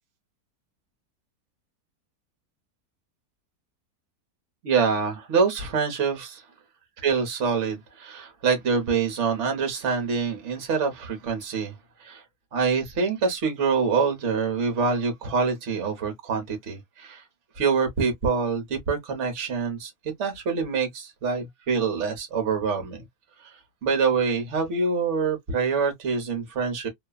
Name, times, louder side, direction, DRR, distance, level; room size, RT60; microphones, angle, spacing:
voice 1, 4.6-6.4 7.0-11.7 12.0-12.2 12.5-17.2 17.6-19.9 20.2-23.0 23.4-23.5 23.8-26.9, right 5 dB, 50° right, 1.3 m, -25 dB
3.0 x 2.3 x 2.2 m
omnidirectional pair, 1.7 m